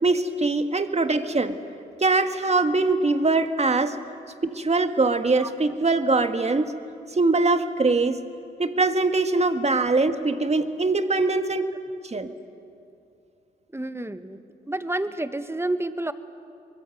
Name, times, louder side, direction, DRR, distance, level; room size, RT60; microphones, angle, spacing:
voice 1, 0.0-1.6 2.0-4.0 4.4-6.7 7.1-8.2 8.6-11.6 12.0-12.3, right 3 dB, 30° right, 8 dB, 1.9 m, -22 dB
voice 2, 11.2-12.0 13.7-14.4 14.7-16.1, right 1 dB, 10° right, 11 dB, 1.5 m, -30 dB
24.0 x 22.0 x 7.9 m, 2.5 s
hypercardioid pair, 40°, 21 cm